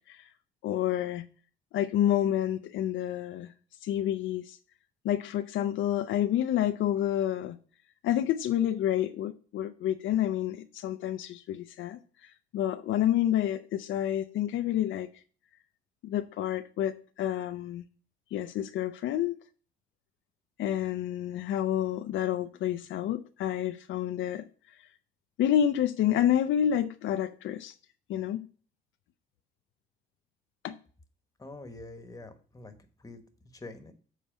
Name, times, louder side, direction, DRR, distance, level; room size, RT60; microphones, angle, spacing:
voice 1, 0.6-1.3 1.7-3.5 3.8-4.6 5.0-7.6 8.0-12.0 12.5-15.1 16.0-17.8 18.3-19.4 20.6-24.4 25.4-27.7 28.1-28.5 30.6-30.8, left 11 dB, 75° left, 0.5 m, -29 dB
voice 2, 31.4-32.7 33.0-33.2 33.5-33.9, left 2 dB, 15° left, 1.2 m, -45 dB
7.5 x 4.1 x 5.9 m
cardioid pair, 90°, 20 cm